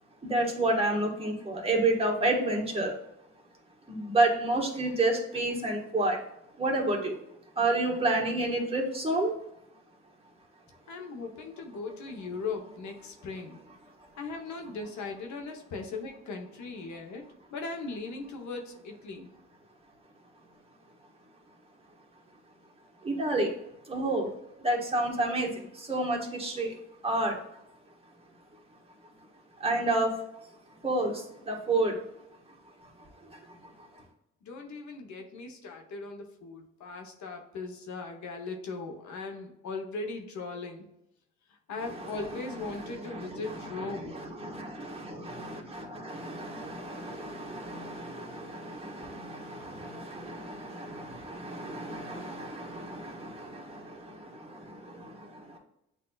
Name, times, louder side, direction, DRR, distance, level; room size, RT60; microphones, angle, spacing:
voice 1, 0.3-2.9 3.9-6.2 6.6-7.1 7.6-9.3 23.0-23.5 23.9-24.3 24.6-25.5 25.8-26.7 27.0-27.3 29.6-30.1 30.8-31.1 31.5-31.9 42.0-42.1 42.8-55.1, right 2 dB, 20° right, -1 dB, 1.3 m, -30 dB
voice 2, 10.9-13.6 14.2-17.2 17.5-19.3 34.4-40.9 41.5-44.2, left 3 dB, 70° left, 3 dB, 1.0 m, -39 dB
7.8 x 2.7 x 2.3 m, 0.81 s
cardioid pair, 90°, 30 cm